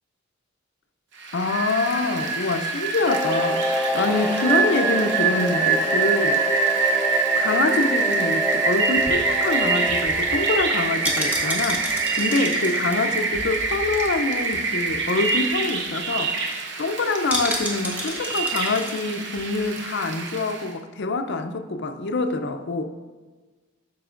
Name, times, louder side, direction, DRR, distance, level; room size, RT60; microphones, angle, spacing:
Rain, 1.2-20.7, right 4 dB, 60° right, 0.9 m, -25 dB
voice 1, 1.3-6.6 7.3-22.9, left 3 dB, 55° left, 7 dB, 0.5 m, -25 dB
Singing / Musical instrument, 3.1-13.1 13.4-13.5, equal, 10° left, 0.5 m, -29 dB
sound 1, 8.8-14.2 14.5-14.6 14.9-15.1 15.5-15.6 15.9-16.2 17.3-19.0 19.4-19.5, equal, 10° right, 1.4 m, -32 dB
13.0 x 5.2 x 2.5 m, 1.3 s
head